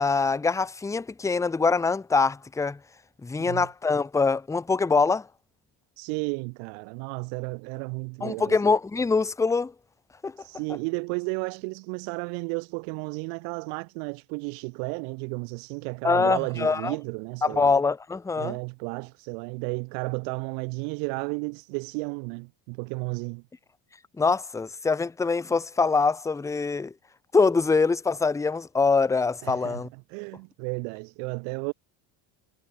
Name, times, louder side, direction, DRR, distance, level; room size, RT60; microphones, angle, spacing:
voice 1, 0.0-2.8 3.2-5.3 8.2-9.7 10.2-10.3 16.0-16.9 17.4-18.6 24.2-26.9 27.3-29.9, left 4 dB, 5° left, 0.4 m, -24 dB
voice 2, 6.0-8.6 10.4-17.7 18.4-23.4 29.4-31.7, right 40 dB or more, 90° right, 3.4 m, -33 dB
cardioid pair, 115°, 48 cm